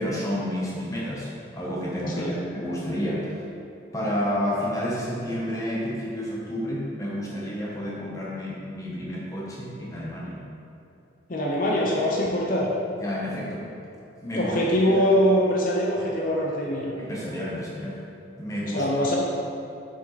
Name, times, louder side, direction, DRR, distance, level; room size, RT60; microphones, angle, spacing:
voice 1, 0.0-3.4 3.9-10.4 13.0-13.7 14.2-14.5 14.9-15.0 17.0-18.0 18.4-19.2, equal, 15° left, -5 dB, 1.1 m, -30 dB
voice 2, 11.3-12.7 14.3-16.9 18.7-19.2, equal, 45° left, -3 dB, 0.7 m, -23 dB
7.1 x 5.2 x 4.1 m, 2.7 s
head